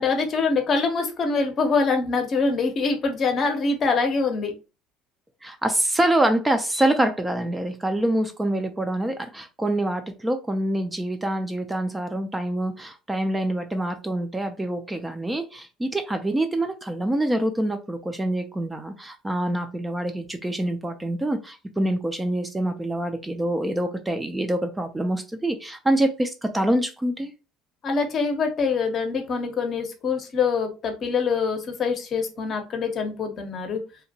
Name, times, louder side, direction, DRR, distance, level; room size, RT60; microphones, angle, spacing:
voice 1, 0.0-4.5 27.8-33.8, left 4 dB, 45° left, 5 dB, 0.7 m, -24 dB
voice 2, 5.4-27.3, right 1 dB, 10° right, 6 dB, 0.4 m, -25 dB
2.7 x 2.1 x 2.7 m, 0.31 s
supercardioid pair, 95°, 0 cm